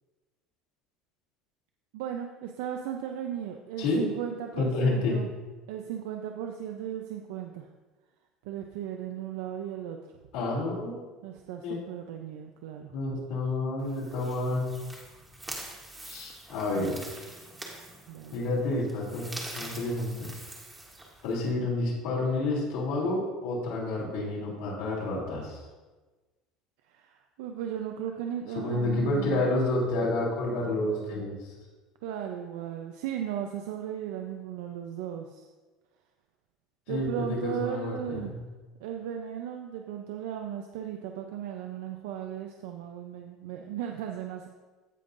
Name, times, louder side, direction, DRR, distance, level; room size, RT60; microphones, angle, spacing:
voice 1, 1.9-5.3 5.7-7.7 8.4-10.0 11.2-12.9 16.7-17.0 18.1-18.3 26.9-29.5 32.0-35.5 36.9-38.3 38.8-44.5, right 9 dB, 85° right, 4 dB, 0.5 m, -36 dB
voice 2, 4.6-5.2 10.3-11.0 11.6-11.8 12.9-14.7 16.0-17.0 18.3-19.3 19.5-20.3 21.2-25.6 28.5-31.5 36.9-38.3, left 2 dB, 80° left, -5 dB, 2.8 m, -29 dB
sound 1, 13.8-21.5, right 2 dB, 10° right, 1.2 m, -44 dB
16.0 x 5.4 x 2.6 m, 1.3 s
cardioid pair, 160°, 0 cm